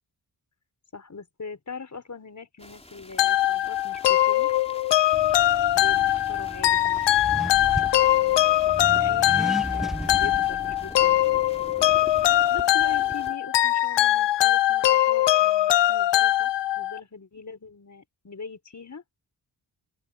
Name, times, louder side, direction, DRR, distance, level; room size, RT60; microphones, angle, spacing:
voice 1, 0.9-4.5 5.7-7.2 8.8-11.2 11.6-11.7 12.5-16.5 16.8-19.0, left 4 dB, 45° left, 5.3 m, -41 dB
sound 1, 2.6-13.4, left 1 dB, 15° left, 3.9 m, -47 dB
sound 2, 3.2-17.0, left 13 dB, 85° left, 0.6 m, -22 dB
Accelerating revving vroom, 5.1-12.5, equal, ahead, 1.0 m, -36 dB
open air
wide cardioid pair, 90°, 42 cm